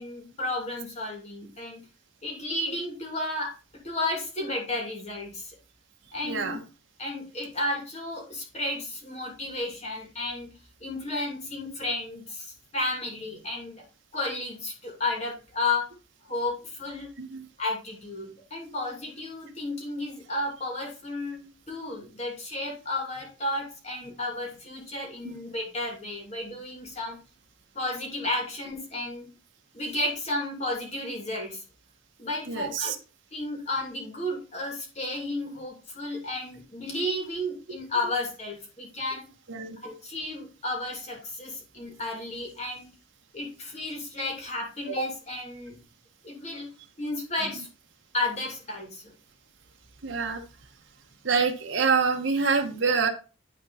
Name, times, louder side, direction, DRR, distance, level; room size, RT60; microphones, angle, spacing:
voice 1, 0.0-1.8 2.2-3.5 3.8-5.6 6.1-6.5 7.0-10.5 10.8-13.8 14.1-15.9 16.3-17.1 17.6-27.2 27.7-29.3 29.7-31.6 32.2-32.9 33.3-39.3 39.8-42.9 43.3-45.8 46.2-46.7 47.0-47.7 48.1-49.1, left 2 dB, 35° left, 0 dB, 2.6 m, -32 dB
voice 2, 6.2-6.6 17.2-17.5 25.2-25.4 32.5-33.0 39.5-39.8 50.0-50.4 51.2-53.1, right 5 dB, 65° right, 3 dB, 1.0 m, -26 dB
10.5 x 4.1 x 4.2 m, 0.33 s
head